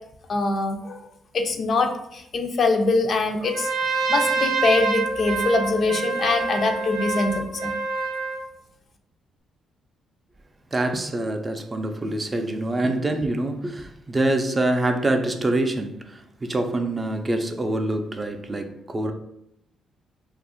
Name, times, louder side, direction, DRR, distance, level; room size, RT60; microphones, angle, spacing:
voice 1, 0.3-1.1 1.3-7.7, left 3 dB, 50° left, 5 dB, 0.3 m, -23 dB
Trumpet, 3.4-8.4, right 4 dB, 80° right, 0.5 m, -26 dB
voice 2, 10.7-19.1, right 2 dB, 25° right, 6 dB, 0.4 m, -25 dB
2.4 x 2.0 x 3.6 m, 0.77 s
cardioid pair, 90°, 0 cm